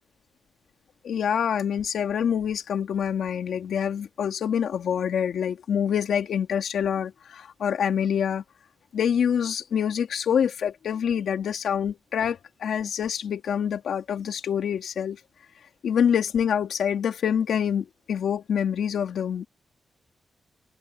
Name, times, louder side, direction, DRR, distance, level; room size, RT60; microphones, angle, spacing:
voice 1, 1.0-8.4 8.9-15.2 15.8-19.5, left 8 dB, 80° left, 2.6 m, -26 dB
cardioid pair, 80°, 0 cm